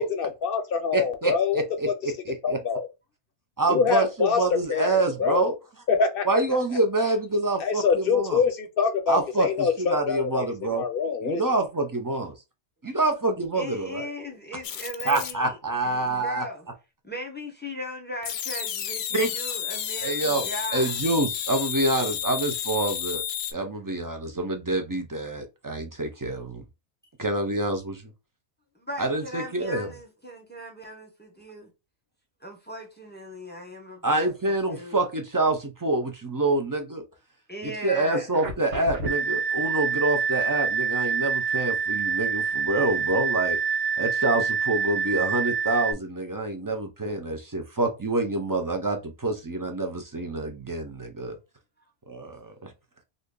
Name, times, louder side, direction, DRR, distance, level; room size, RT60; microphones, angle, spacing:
voice 1, 0.0-2.1 2.4-2.9 3.7-4.4 4.7-5.5 5.9-6.2 7.6-10.5 10.7-11.4, left 6 dB, 60° left, 0.7 m, -25 dB
voice 2, 0.9-1.9 2.3-2.6 3.6-5.5 6.3-8.4 9.1-10.8 11.2-12.3 12.8-14.1 15.1-16.4 19.1-19.3 20.0-23.2 23.5-26.6 27.2-28.1 29.0-29.9 34.0-37.0 37.6-43.6 44.0-51.4 52.1-52.7, right 2 dB, 30° right, 0.3 m, -27 dB
voice 3, 13.5-15.6 15.8-16.7 17.0-21.0 28.7-31.7 32.4-35.0 37.5-38.3 42.9-43.1 46.5-46.6, equal, 10° left, 0.7 m, -38 dB
sound 1, 14.6-15.3 18.2-23.5, left 9 dB, 85° left, 0.9 m, -31 dB
sound 2, 38.3-45.9, right 6 dB, 75° right, 1.2 m, -26 dB
2.7 x 2.5 x 3.6 m
omnidirectional pair, 1.2 m